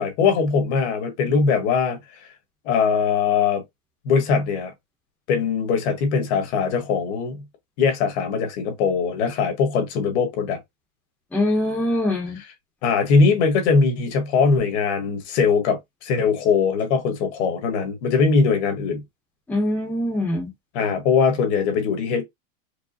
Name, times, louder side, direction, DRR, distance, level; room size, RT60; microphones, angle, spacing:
voice 1, 0.0-2.0 2.6-3.6 4.0-4.7 5.3-7.4 7.8-10.6 12.8-19.0 20.7-22.2, left 5 dB, 55° left, 1.5 m, -21 dB
voice 2, 11.3-12.4 19.5-20.5, left 1 dB, 5° left, 0.9 m, -23 dB
4.7 x 2.2 x 2.8 m
supercardioid pair, 160°, 41 cm